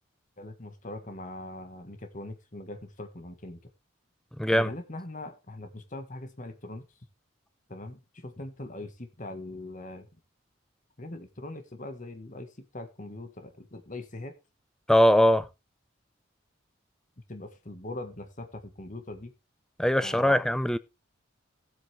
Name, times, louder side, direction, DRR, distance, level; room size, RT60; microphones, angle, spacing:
voice 1, 0.4-3.6 4.5-6.9 7.7-10.1 11.0-14.3 17.3-19.3 20.0-20.4, left 2 dB, 40° left, 1.5 m, -41 dB
voice 2, 14.9-15.4 19.8-20.8, equal, 5° left, 0.5 m, -21 dB
15.5 x 8.0 x 3.4 m
head